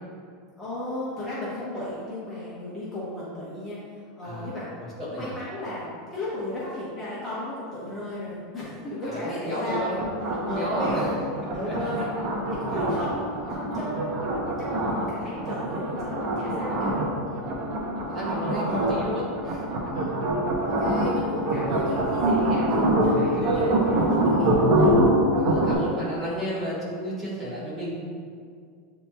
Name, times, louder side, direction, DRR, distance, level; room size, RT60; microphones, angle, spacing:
voice 1, 0.6-3.8 4.1-4.7 5.0-10.1 10.5-11.2 11.5-12.1 12.6-14.4 14.9-17.0 17.3-17.5 18.6-18.9 19.9-20.1 20.6-24.9, left 1 dB, 15° left, -9 dB, 0.8 m, -34 dB
voice 2, 4.2-4.5 5.0-5.3 9.0-9.9 10.3-11.1 11.4-11.9 12.7-12.8 14.7-15.0 16.3-16.7 17.4-17.7 18.1-19.7 22.7-23.8 25.4-27.9, equal, 15° right, -8 dB, 1.3 m, -33 dB
sound 1, 9.7-25.7, right 1 dB, 45° right, 0.7 m, -25 dB
7.9 x 2.9 x 2.3 m, 2.2 s
supercardioid pair, 165°, 0 cm